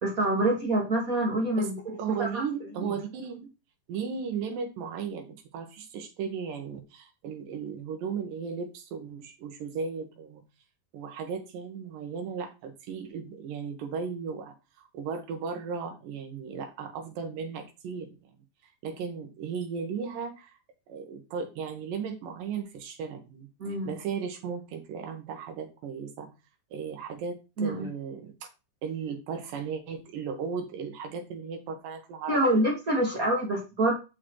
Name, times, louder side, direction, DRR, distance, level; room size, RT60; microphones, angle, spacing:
voice 1, 0.0-1.9 2.2-2.4 2.8-2.9 23.6-23.9 27.6-27.9 32.3-33.9, right 1 dB, 45° right, -2 dB, 1.1 m, -26 dB
voice 2, 2.0-3.5 3.9-10.4 10.9-18.2 18.8-20.6 20.9-26.3 26.7-28.3 28.8-32.4, right 6 dB, 75° right, 4 dB, 2.8 m, -36 dB
6.6 x 6.3 x 3.1 m, 0.29 s
omnidirectional pair, 4.1 m